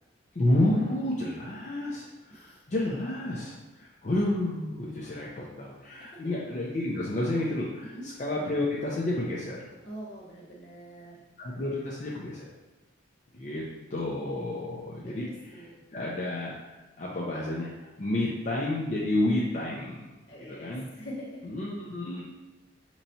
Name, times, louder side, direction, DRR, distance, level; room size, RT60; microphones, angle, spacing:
voice 1, 0.3-9.6 11.4-12.5 13.3-13.6 13.9-20.0 20.4-20.9 21.4-22.2, left 1 dB, 40° left, -5 dB, 0.5 m, -30 dB
voice 2, 2.3-2.6 6.1-6.2 7.9-8.1 9.8-11.2 15.0-15.3 15.5-15.8 20.3-21.5, equal, 60° left, -5 dB, 1.1 m, -44 dB
5.4 x 3.0 x 2.7 m, 1.1 s
head